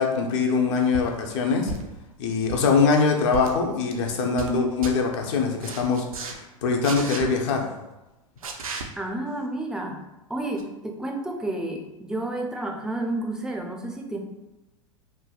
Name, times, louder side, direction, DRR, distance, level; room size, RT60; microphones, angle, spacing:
voice 1, 0.0-1.7 2.2-7.7, left 4 dB, 55° left, 2 dB, 0.6 m, -23 dB
sound 1, 0.9-1.1 1.7-2.0 2.4-2.7 3.3-3.5 4.0-4.5 4.8-4.9 5.6-6.3 6.8-7.2 8.4-8.8 10.6-10.7, right 3 dB, 90° right, 0.4 m, -34 dB
voice 2, 9.0-10.0 10.3-14.2, right 1 dB, 5° right, 2 dB, 0.3 m, -31 dB
3.3 x 2.2 x 2.3 m, 1.0 s
hypercardioid pair, 95°, 18 cm